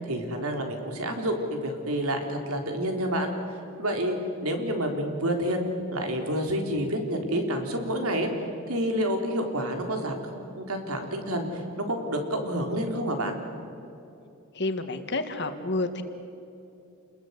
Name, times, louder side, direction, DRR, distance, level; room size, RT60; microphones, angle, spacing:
voice 1, 0.0-3.3 3.8-4.2 4.4-8.3 8.7-13.4, equal, 90° right, 3 dB, 3.9 m, -29 dB
voice 2, 14.5-16.0, left 2 dB, 55° left, 8 dB, 1.9 m, -29 dB
29.0 x 21.0 x 8.3 m, 2.7 s
head